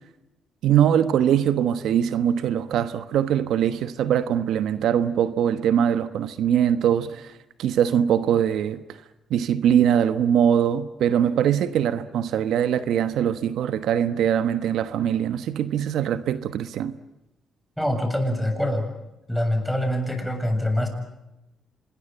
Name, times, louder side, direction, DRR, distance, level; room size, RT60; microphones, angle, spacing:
voice 1, 0.6-7.3 7.6-8.8 9.3-17.0, right 9 dB, 75° right, 1.2 m, -22 dB
voice 2, 17.8-18.9 19.3-20.9, left 1 dB, ahead, 7.4 m, -24 dB
26.5 x 20.5 x 9.1 m
cardioid pair, 90°, 0 cm